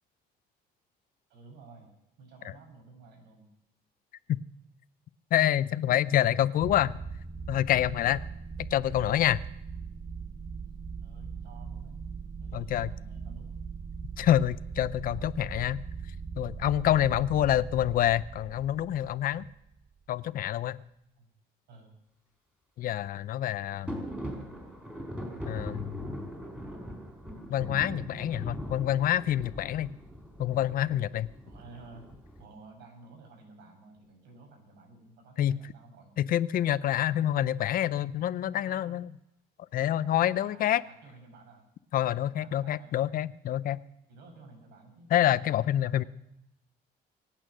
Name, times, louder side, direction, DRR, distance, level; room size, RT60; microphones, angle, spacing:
voice 1, 1.3-1.9 2.2-3.5 11.0-12.0 12.4-13.5 21.2-21.3 21.7-22.0 31.4-32.1 32.4-36.2 38.5-38.9 40.3-41.6 42.1-43.1 44.1-45.1 45.8-46.1, right 3 dB, 85° right, 3 dB, 6.0 m, -53 dB
voice 2, 5.3-7.0 7.5-8.2 8.7-9.4 12.5-12.9 14.2-15.8 16.4-19.5 20.1-20.8 22.8-24.0 25.5-26.1 27.5-29.9 30.4-31.3 35.4-35.5 36.2-39.1 39.7-40.8 41.9-43.8 45.1-46.0, left 12 dB, 55° left, 17 dB, 0.6 m, -27 dB
sound 1, 6.6-19.9, right 5 dB, 25° right, 1.3 m, -40 dB
sound 2, 23.9-32.4, equal, 5° right, 4.4 m, -41 dB
24.0 x 8.9 x 6.2 m, 0.82 s
cardioid pair, 110°, 17 cm